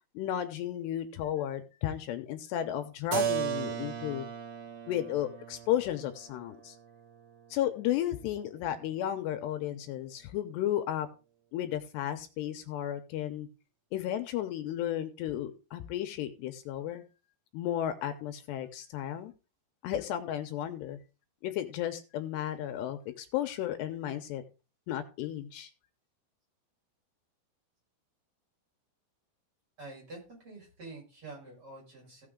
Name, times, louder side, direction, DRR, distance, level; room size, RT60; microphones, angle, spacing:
voice 1, 0.1-4.3 4.9-6.8 7.5-11.1 11.5-13.5 13.9-17.0 17.5-19.3 19.8-21.0 21.4-24.4 24.9-25.7, left 11 dB, 80° left, 8 dB, 2.8 m, -33 dB
Keyboard (musical), 3.1-8.7, right 8 dB, 75° right, 1.8 m, -37 dB
voice 2, 29.8-32.3, right 2 dB, 30° right, -3 dB, 6.4 m, -47 dB
16.0 x 6.4 x 3.7 m, 0.32 s
omnidirectional pair, 5.0 m